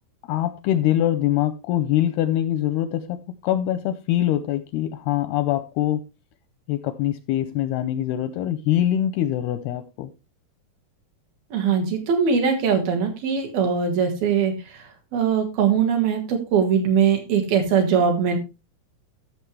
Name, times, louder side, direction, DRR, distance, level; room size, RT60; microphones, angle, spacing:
voice 1, 0.3-6.0 6.7-10.1, left 12 dB, 80° left, 2.3 m, -23 dB
voice 2, 11.5-18.4, right 6 dB, 65° right, 3.3 m, -21 dB
14.5 x 6.5 x 3.2 m
omnidirectional pair, 5.0 m